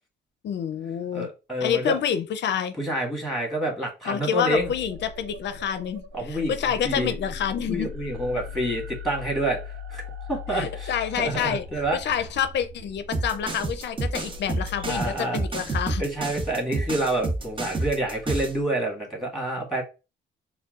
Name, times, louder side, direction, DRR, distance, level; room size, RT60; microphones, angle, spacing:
voice 1, 0.4-1.3 1.6-2.7 4.0-7.9 10.5-11.7 11.9-16.0, left 8 dB, 60° left, 0.5 m, -28 dB
voice 2, 1.1-2.0 2.8-4.7 6.1-6.6 6.8-7.1 7.7-9.6 9.9-10.0 10.3-12.0 14.8-15.4 16.0-19.8, right 1 dB, ahead, 1.6 m, -28 dB
sound 1, 4.6-15.0, left 4 dB, 90° right, 0.6 m, -39 dB
sound 2, 13.1-18.6, right 2 dB, 25° right, 0.6 m, -29 dB
4.4 x 2.2 x 2.4 m
cardioid pair, 90°, 20 cm